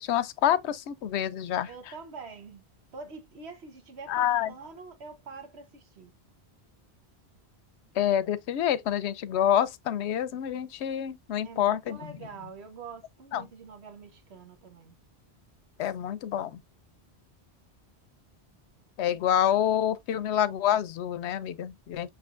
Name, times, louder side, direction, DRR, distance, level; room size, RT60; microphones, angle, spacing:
voice 1, 0.0-1.7 4.1-4.5 7.9-12.0 13.3-13.5 15.8-16.6 19.0-22.1, left 10 dB, 85° left, 0.9 m, -27 dB
voice 2, 1.7-2.6 2.9-6.1 11.4-14.9, right 4 dB, 75° right, 1.3 m, -45 dB
6.1 x 3.3 x 2.5 m
omnidirectional pair, 1.1 m